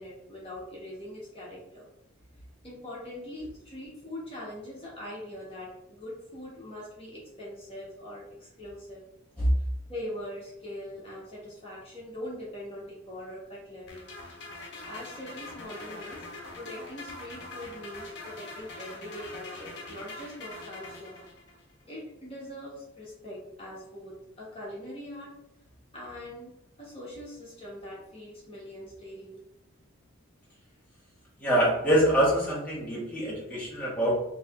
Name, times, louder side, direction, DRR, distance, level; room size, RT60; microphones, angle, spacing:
voice 1, 0.0-1.8 2.6-9.0 9.6-14.0 14.8-16.3 16.5-21.2 21.8-25.3 25.9-26.5 26.8-29.4, left 1 dB, 25° left, -5 dB, 1.0 m, -42 dB
sound 1, 13.9-21.6, left 2 dB, 55° left, 0.7 m, -43 dB
voice 2, 31.4-34.2, right 1 dB, 5° left, -7 dB, 0.9 m, -25 dB
3.2 x 2.8 x 3.5 m, 0.84 s
head